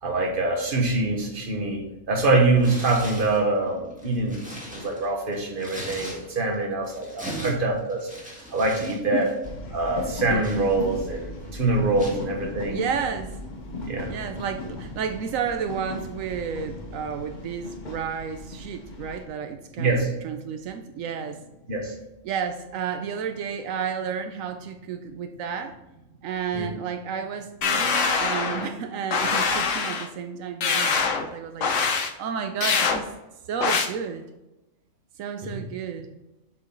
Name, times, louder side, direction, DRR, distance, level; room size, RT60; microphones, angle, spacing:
voice 1, 0.0-4.4 4.7-8.1 8.5-9.3 9.7-12.8 13.8-14.1 19.8-20.1 21.7-21.9 26.5-26.7 35.4-35.6, right 2 dB, 45° right, 1 dB, 1.4 m, -24 dB
Tearing, 2.6-3.4 3.9-6.5 6.8-9.0 9.3-9.5 10.0-11.2 12.0-12.2, left 1 dB, 5° right, 1.7 m, -40 dB
voice 2, 7.2-7.6 9.1-9.3 10.3-10.4 12.7-13.4 13.9-21.4 22.2-25.8 26.2-33.1 33.5-34.2 35.2-36.1, right 7 dB, 85° right, 6 dB, 1.0 m, -32 dB
sound 1, 9.4-19.3, left 2 dB, 40° left, 1.0 m, -37 dB
sound 2, 27.6-28.7 29.1-30.1 30.6-31.3 31.6-32.1 32.6-33.0 33.6-33.9, left 5 dB, 70° left, 1.1 m, -23 dB
7.4 x 4.8 x 3.9 m, 0.97 s
omnidirectional pair, 1.3 m